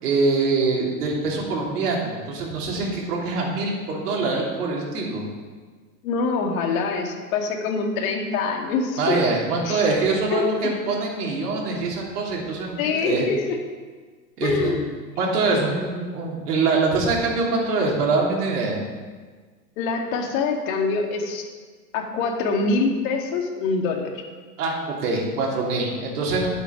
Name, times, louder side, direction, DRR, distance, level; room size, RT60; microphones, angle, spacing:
voice 1, 0.0-5.3 9.0-13.3 14.4-14.7 15.2-18.8 24.6-26.5, right 3 dB, 70° right, -2 dB, 3.3 m, -24 dB
voice 2, 6.0-9.2 9.6-9.8 10.3-10.7 12.8-13.6 14.4-14.9 19.8-21.5 21.9-24.2, left 4 dB, 55° left, 2 dB, 2.2 m, -25 dB
11.0 x 8.0 x 6.0 m, 1.5 s
hypercardioid pair, 130°, 48 cm